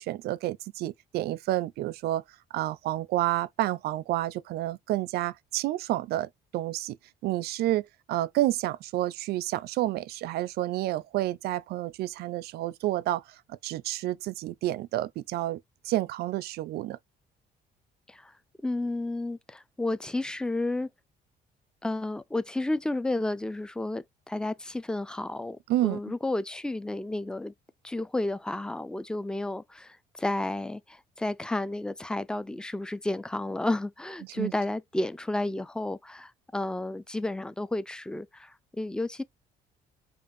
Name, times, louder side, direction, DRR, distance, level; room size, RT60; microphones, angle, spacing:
voice 1, 0.0-2.2 2.5-7.0 7.2-13.2 13.5-17.0 25.7-26.0 34.4-34.5, right 15 dB, 70° right, 0.4 m, -29 dB
voice 2, 18.6-20.9 21.8-27.5 27.8-39.2, left 2 dB, 5° left, 0.3 m, -32 dB
5.1 x 2.4 x 2.6 m
cardioid pair, 110°, 17 cm